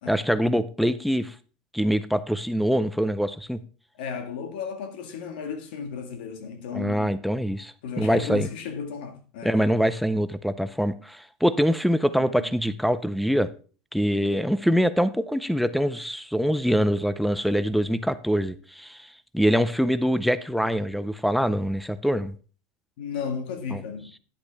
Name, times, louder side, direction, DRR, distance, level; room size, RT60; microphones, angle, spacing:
voice 1, 0.1-1.3 1.7-3.6 6.7-8.5 9.4-13.5 13.9-19.1 19.3-22.3 23.7-23.8, equal, ahead, 0.5 m, -24 dB
voice 2, 4.0-7.2 7.8-9.5 12.2-12.5 23.0-24.1, left 6 dB, 85° left, 1.8 m, -34 dB
10.0 x 8.1 x 3.5 m
supercardioid pair, 140°, 5 cm